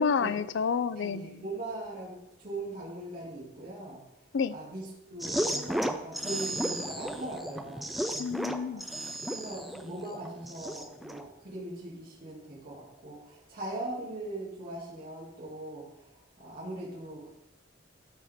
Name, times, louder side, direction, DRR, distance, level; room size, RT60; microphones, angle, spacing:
voice 1, 0.0-1.4 4.3-4.5 8.2-8.8, left 5 dB, 70° left, 15 dB, 0.4 m, -29 dB
voice 2, 1.0-4.0 4.5-8.2 8.7-9.0 9.3-15.8 16.4-17.3, right 2 dB, 50° right, -6 dB, 2.1 m, -40 dB
sound 1, 5.2-11.2, right 1 dB, ahead, 0.3 m, -34 dB
12.5 x 4.7 x 3.5 m, 0.87 s
head